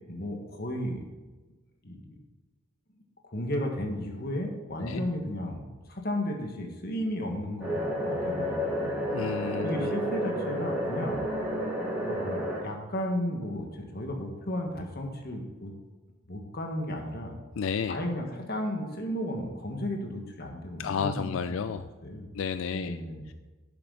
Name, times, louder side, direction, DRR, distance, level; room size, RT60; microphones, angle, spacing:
voice 1, 0.1-1.0 1.8-2.2 3.2-5.6 5.9-9.0 9.6-11.2 12.1-15.7 16.3-17.4 17.9-22.3 22.7-23.3, left 1 dB, 50° left, 2 dB, 1.7 m, -34 dB
sound 1, 7.6-12.6, equal, 10° right, 2.6 m, -30 dB
voice 2, 9.1-9.9 17.6-18.0 20.8-21.8 22.3-23.0, left 6 dB, 85° left, 11 dB, 0.4 m, -31 dB
11.5 x 7.5 x 4.1 m, 1.3 s
head